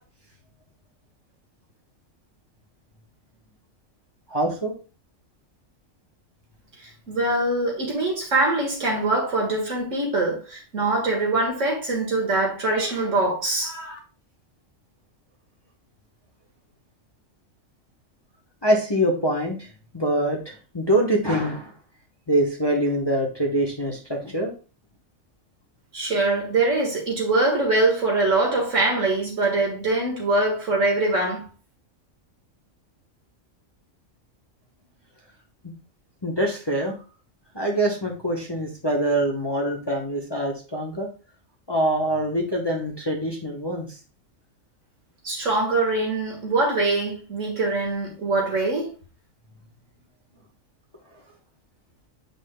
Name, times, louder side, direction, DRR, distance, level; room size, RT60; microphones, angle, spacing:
voice 1, 4.3-4.7 18.6-19.7 19.9-21.7 22.3-24.5 36.2-37.0 37.5-41.1 41.7-43.9, right 1 dB, 20° left, 1.0 m, -24 dB
voice 2, 7.1-14.0 25.9-31.4 45.2-48.9, right 2 dB, 65° right, 2.1 m, -23 dB
8.2 x 5.4 x 2.2 m
omnidirectional pair, 1.4 m